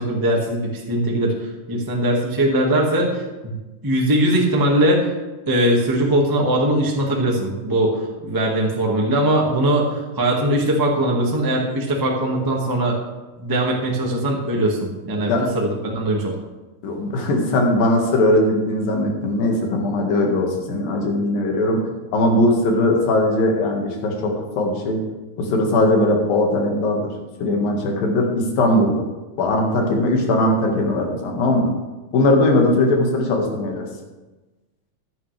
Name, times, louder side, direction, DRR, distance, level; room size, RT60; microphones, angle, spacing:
voice 1, 0.0-3.6 3.8-5.1 5.5-12.9 13.4-16.3, right 1 dB, 15° right, -1 dB, 0.6 m, -20 dB
voice 2, 16.8-21.8 22.1-25.0 25.4-27.1 27.4-29.1 29.4-31.7 32.1-33.9, left 1 dB, 80° left, 1 dB, 3.6 m, -19 dB
14.5 x 11.0 x 3.4 m, 1.1 s
omnidirectional pair, 4.0 m